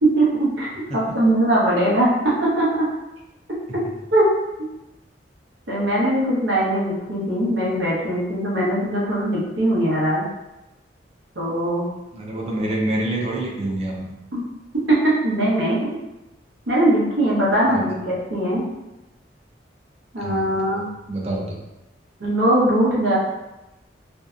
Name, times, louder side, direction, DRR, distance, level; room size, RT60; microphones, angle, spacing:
voice 1, 0.0-2.9 4.1-4.3 5.7-10.2 11.4-11.9 14.3-14.4 14.9-15.9 16.7-18.6 20.1-20.9 22.2-23.2, right 1 dB, 85° right, -6 dB, 0.8 m, -20 dB
voice 2, 12.1-14.1 17.7-17.8 20.2-20.8 21.1-21.4, right 1 dB, 35° right, -2 dB, 0.5 m, -27 dB
2.6 x 2.2 x 2.4 m, 0.99 s
head